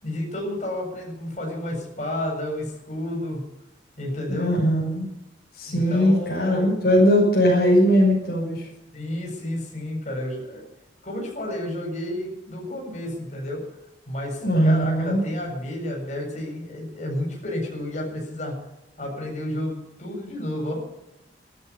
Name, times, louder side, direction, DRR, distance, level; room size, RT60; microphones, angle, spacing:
voice 1, 0.0-3.4 4.0-4.5 5.6-6.8 8.9-10.7 11.0-13.6 14.1-18.5 19.0-20.8, left 1 dB, 40° left, -1 dB, 7.6 m, -31 dB
voice 2, 4.3-5.1 5.6-8.6 14.4-15.2, equal, 60° left, -3 dB, 6.2 m, -20 dB
14.5 x 13.5 x 7.1 m, 0.91 s
head